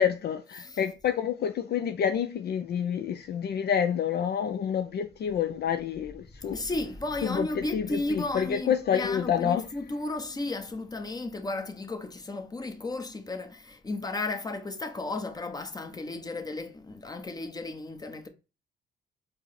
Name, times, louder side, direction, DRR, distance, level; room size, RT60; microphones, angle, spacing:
voice 1, 0.0-6.6 7.2-9.6, left 8 dB, 55° left, 0.4 m, -28 dB
voice 2, 6.3-18.3, left 2 dB, 20° left, 0.8 m, -34 dB
4.6 x 2.1 x 4.1 m
cardioid pair, 90°, 20 cm